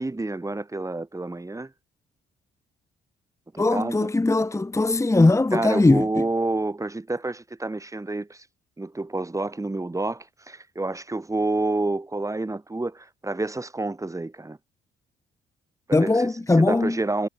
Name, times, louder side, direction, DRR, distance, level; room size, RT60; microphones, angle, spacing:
voice 1, 0.0-1.7 3.5-4.1 5.5-8.4 8.8-14.6 15.9-16.3 16.6-17.3, right 2 dB, 15° right, 6.7 m, -29 dB
voice 2, 3.6-6.1 15.9-17.0, left 2 dB, 15° left, 1.4 m, -20 dB
cardioid pair, 90°, 20 cm